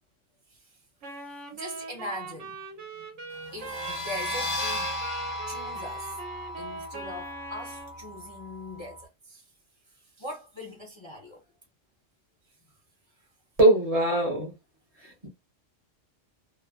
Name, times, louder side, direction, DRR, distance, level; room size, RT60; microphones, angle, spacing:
Wind instrument woodwind instrument, 1.0-8.0, right 4 dB, 70° right, 1.1 m, -41 dB
voice 1, 1.5-2.6 3.0-5.1 5.4-6.2 6.6-9.4 10.2-11.4 15.0-15.1, left 1 dB, 35° left, 0.5 m, -41 dB
sound 1, 3.5-9.0, left 1 dB, 70° left, 1.4 m, -35 dB
voice 2, 13.6-14.5 15.0-15.3, right 2 dB, 35° right, 0.8 m, -22 dB
3.0 x 2.1 x 2.3 m
omnidirectional pair, 1.3 m